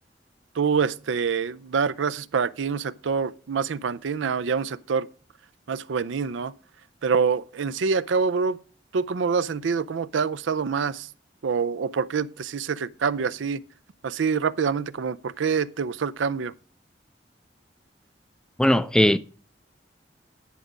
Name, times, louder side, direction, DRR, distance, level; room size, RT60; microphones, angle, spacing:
voice 1, 0.6-5.1 5.7-6.5 7.0-8.6 8.9-11.1 11.4-13.6 14.0-16.5, right 5 dB, 90° right, 0.5 m, -26 dB
voice 2, 18.6-19.2, left 1 dB, 5° left, 0.3 m, -18 dB
10.0 x 4.9 x 5.2 m
head